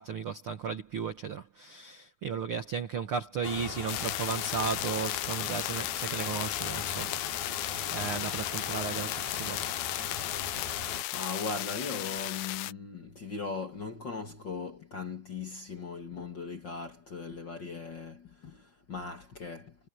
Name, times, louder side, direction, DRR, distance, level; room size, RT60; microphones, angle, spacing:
voice 1, 0.0-7.2 7.5-9.6, right 6 dB, 85° right, 1.2 m, -35 dB
sound 1, 3.4-11.0, left 5 dB, 70° left, 6.6 m, -39 dB
sound 2, 3.9-12.7, left 18 dB, 90° left, 2.7 m, -35 dB
voice 2, 11.1-19.8, left 4 dB, 45° left, 1.6 m, -39 dB
omnidirectional pair, 4.6 m